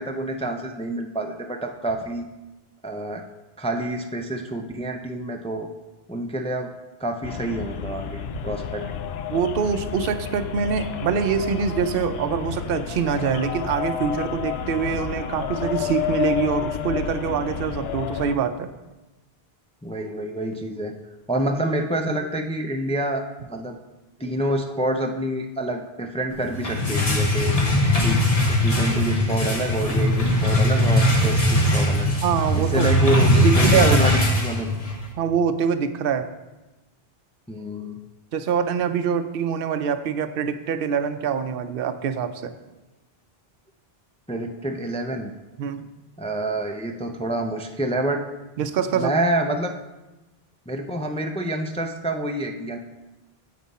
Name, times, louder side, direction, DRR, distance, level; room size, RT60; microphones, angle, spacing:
voice 1, 0.0-2.3 2.8-3.2 3.6-5.7 6.1-6.7 7.0-8.8 19.8-20.9 21.3-23.8 24.2-27.6 28.0-32.1 32.5-34.7 37.5-38.0 44.3-45.3 46.2-48.2 48.9-49.7 50.7-52.8, right 1 dB, 10° left, 4 dB, 0.4 m, -27 dB
sound 1, 7.2-18.4, left 8 dB, 80° left, 0.8 m, -30 dB
voice 2, 9.3-18.7 32.2-32.9 33.3-34.0 35.2-36.3 38.3-42.5 45.6-45.9 48.6-49.1, right 7 dB, 65° right, 10 dB, 0.8 m, -24 dB
sound 2, 26.4-35.1, left 1 dB, 35° left, 1.2 m, -20 dB
9.3 x 7.7 x 4.2 m, 1.1 s
omnidirectional pair, 1.1 m